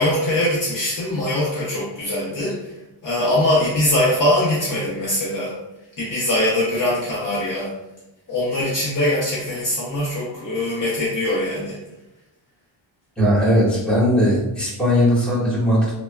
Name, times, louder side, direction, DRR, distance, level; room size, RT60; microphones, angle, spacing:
voice 1, 0.0-2.6 3.0-5.5 6.0-7.7 8.3-11.8, left 1 dB, 40° left, -6 dB, 0.6 m, -22 dB
voice 2, 13.2-15.9, equal, ahead, -8 dB, 1.4 m, -18 dB
3.3 x 2.1 x 2.2 m, 0.94 s
cardioid pair, 110°, 49 cm